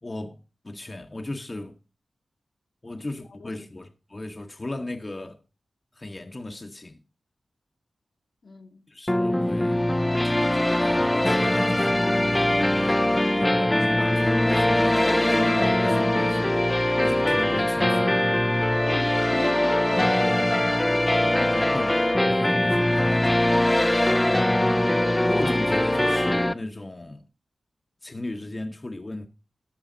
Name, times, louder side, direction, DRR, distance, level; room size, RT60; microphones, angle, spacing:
voice 1, 0.0-1.8 2.8-5.4 5.9-7.0 8.9-9.9 10.2-16.6 17.0-18.3 21.4-23.7 25.2-27.3 28.0-29.3, left 2 dB, 35° left, 1.0 m, -37 dB
voice 2, 8.4-8.9 18.8-21.5, left 3 dB, 65° left, 1.3 m, -40 dB
sound 1, 9.1-26.5, left 1 dB, 20° left, 0.5 m, -22 dB
13.5 x 5.0 x 3.8 m
cardioid pair, 45°, 0 cm